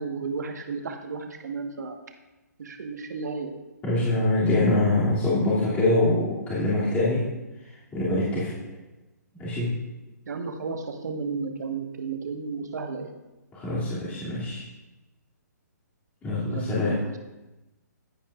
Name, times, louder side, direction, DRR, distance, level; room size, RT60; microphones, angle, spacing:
voice 1, 0.0-2.0 2.6-3.5 10.2-13.1 16.5-17.2, right 4 dB, 70° right, 4 dB, 1.4 m, -33 dB
voice 2, 3.8-7.2 7.9-8.5 9.4-9.7 13.5-14.6 16.2-16.9, left 2 dB, 15° left, -9 dB, 2.6 m, -24 dB
15.0 x 8.9 x 2.5 m, 1.1 s
hypercardioid pair, 140°, 10 cm